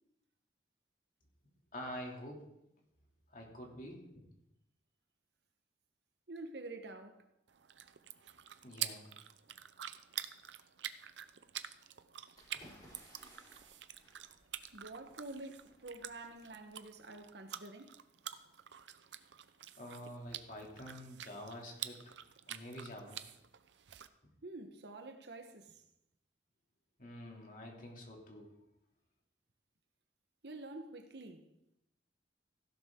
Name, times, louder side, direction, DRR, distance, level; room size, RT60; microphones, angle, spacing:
voice 1, 1.7-2.5 3.3-4.2 8.6-9.1 19.8-22.1 22.5-23.2 27.0-28.5, equal, 50° left, 2.7 m, -47 dB
voice 2, 6.3-7.3 14.7-18.0 18.3-18.5 24.4-25.8 30.4-31.5, right 2 dB, 65° right, 1.2 m, -48 dB
sound 1, 7.5-24.1, right 11 dB, 90° right, 0.7 m, -47 dB
sound 2, 12.3-17.2, equal, 25° left, 5.0 m, -62 dB
15.5 x 11.5 x 3.7 m
head